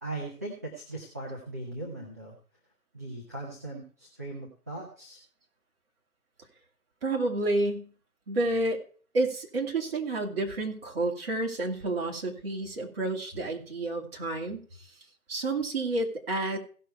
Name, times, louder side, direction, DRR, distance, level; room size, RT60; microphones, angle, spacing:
voice 1, 0.0-2.3 2.9-5.2, right 2 dB, 10° right, -4 dB, 0.6 m, -39 dB
voice 2, 7.0-7.9 8.3-8.8 9.1-14.9 15.3-16.6, right 2 dB, 40° right, 1 dB, 2.5 m, -30 dB
16.5 x 5.8 x 4.6 m, 0.42 s
figure-of-eight pair, 145°, 46 cm